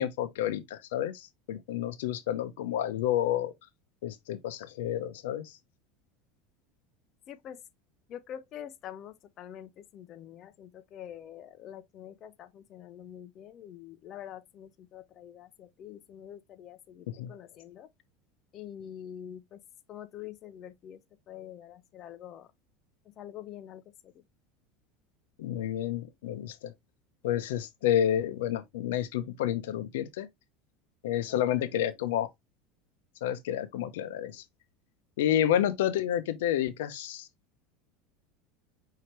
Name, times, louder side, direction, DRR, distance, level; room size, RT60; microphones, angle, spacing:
voice 1, 0.0-3.5 4.0-5.5 17.1-17.3 25.4-26.7 27.2-30.3 31.0-32.3 33.2-34.4 35.2-37.3, left 11 dB, 80° left, 0.7 m, -30 dB
voice 2, 7.3-7.6 8.1-17.9 18.5-19.6 19.9-21.0 21.3-22.5 23.2-24.1 31.3-31.7, left 10 dB, 45° left, 0.6 m, -46 dB
5.7 x 2.8 x 3.1 m
hypercardioid pair, 95°, 0 cm